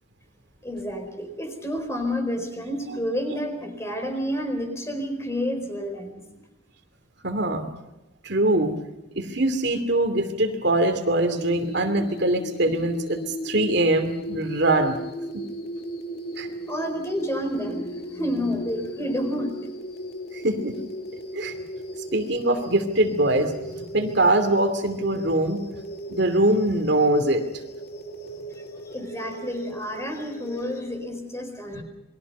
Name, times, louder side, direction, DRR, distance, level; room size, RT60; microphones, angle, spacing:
voice 1, 0.6-6.2 16.7-19.5 28.9-31.8, equal, 15° left, 5 dB, 4.5 m, -29 dB
voice 2, 7.2-7.7 8.2-8.7 9.1-13.2 13.4-15.0 15.3-15.4 16.4-16.5 20.3-20.8 21.3-21.6 22.1-25.6 26.1-27.4 31.7-31.8, right 1 dB, 55° right, 6 dB, 2.7 m, -23 dB
sound 1, 11.3-30.8, equal, 50° left, 2.6 m, -37 dB
29.0 x 22.5 x 5.5 m, 1.0 s
head